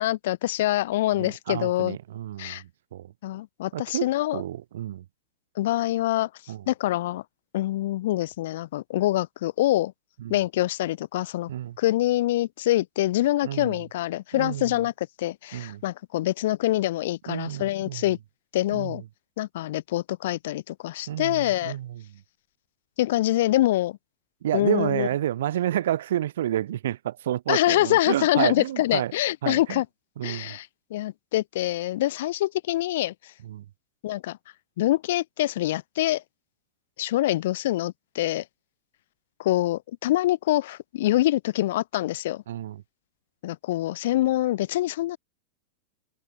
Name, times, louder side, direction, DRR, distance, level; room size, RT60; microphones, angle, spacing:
voice 1, 0.0-2.0 2.4-2.6 3.2-4.4 5.6-6.3 6.7-7.2 7.5-9.9 10.3-11.5 11.8-14.9 15.2-18.2 18.5-19.0 19.4-21.8 23.0-24.0 24.5-25.1 27.5-29.9 30.2-33.1 34.0-34.4 34.8-36.2 37.0-38.4 39.4-42.4 43.4-45.2, left 15 dB, 55° left, 2.7 m, -25 dB
voice 2, 1.2-3.1 3.7-5.0 6.5-6.6 10.2-10.4 11.5-11.8 13.4-13.8 14.3-14.8 15.5-15.8 17.3-18.1 18.7-19.0 21.1-22.0 24.4-29.1 29.4-29.8 30.2-30.6 33.4-33.6 42.5-42.8, right 12 dB, 60° right, 2.9 m, -30 dB
figure-of-eight pair, 90°, 0 cm